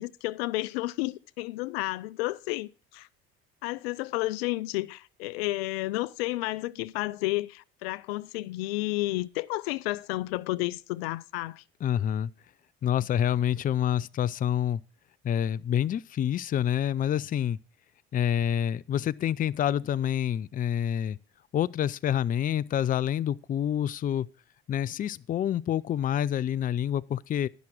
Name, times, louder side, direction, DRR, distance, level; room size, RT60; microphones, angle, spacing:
voice 1, 0.0-3.1 3.6-11.6, left 19 dB, 80° left, 0.5 m, -31 dB
voice 2, 11.8-12.3 12.8-14.8 15.2-17.6 18.1-21.2 21.5-24.3 24.7-27.5, left 10 dB, 30° left, 0.4 m, -27 dB
11.5 x 6.0 x 6.0 m
hypercardioid pair, 75°, 30 cm